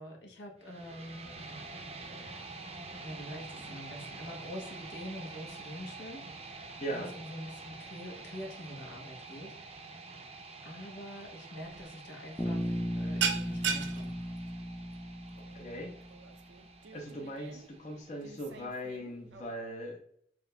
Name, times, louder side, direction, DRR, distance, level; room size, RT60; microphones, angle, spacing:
voice 1, 0.0-1.5 3.0-9.6 10.1-14.2, equal, 80° left, 0 dB, 1.1 m, -46 dB
sound 1, 0.6-18.6, right 3 dB, 35° right, 0.6 m, -47 dB
voice 2, 6.8-7.1 15.4-16.0 16.9-20.0, equal, 45° left, -2 dB, 0.7 m, -40 dB
sound 2, 11.6-11.8 12.1-12.4 12.7-19.6, right 6 dB, 85° right, 0.5 m, -38 dB
Bass guitar, 12.4-16.3, equal, 10° left, 0.4 m, -36 dB
6.1 x 2.5 x 2.2 m, 0.66 s
head